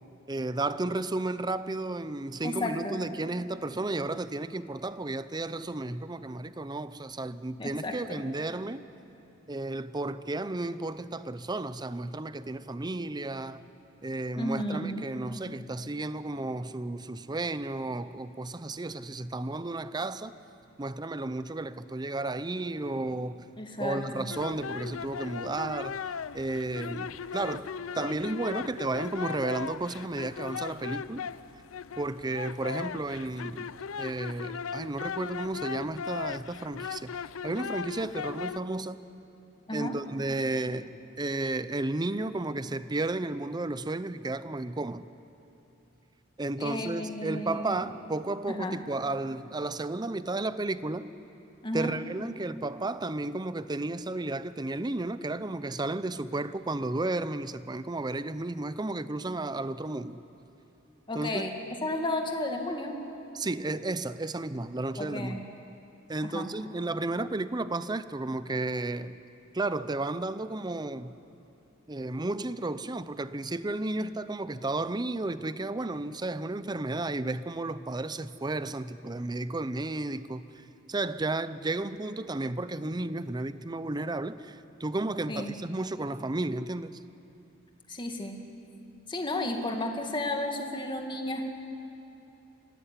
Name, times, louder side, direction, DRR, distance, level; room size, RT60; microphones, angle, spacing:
voice 1, 0.3-8.8 9.5-13.6 14.0-20.3 20.8-23.5 23.8-26.0 26.3-27.7 27.9-31.3 32.0-33.7 34.0-39.0 39.7-45.1 46.4-51.1 51.7-60.2 61.1-61.5 63.3-65.5 66.1-69.1 69.5-71.1 71.9-80.4 80.9-87.0, right 2 dB, 20° right, 0.6 m, -33 dB
voice 2, 2.4-3.0 7.6-8.2 14.4-15.1 23.6-24.3 39.7-40.0 46.6-47.9 48.5-48.8 51.6-51.9 61.1-61.5 61.8-63.0 65.0-65.4 66.2-66.5 85.3-85.5 87.9-88.4 89.1-91.4, left 1 dB, 25° left, 2.2 m, -33 dB
sound 1, 24.3-38.6, left 6 dB, 90° left, 0.5 m, -38 dB
25.0 x 17.0 x 10.0 m
head